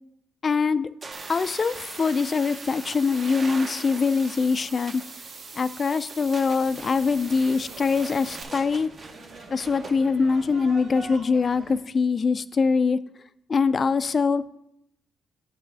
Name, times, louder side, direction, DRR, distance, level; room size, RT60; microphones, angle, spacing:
voice 1, 0.4-0.9 1.3-5.0 5.5-8.9 9.5-13.0 13.5-14.4, left 5 dB, 40° left, 14 dB, 0.4 m, -23 dB
sound 1, 1.0-10.0, right 3 dB, 40° right, 0.9 m, -42 dB
sound 2, 1.1-8.4, right 4 dB, 60° right, 1.2 m, -43 dB
sound 3, 6.6-11.8, right 3 dB, 85° right, 1.9 m, -45 dB
9.3 x 6.1 x 3.4 m, 0.81 s
cardioid pair, 90°, 0 cm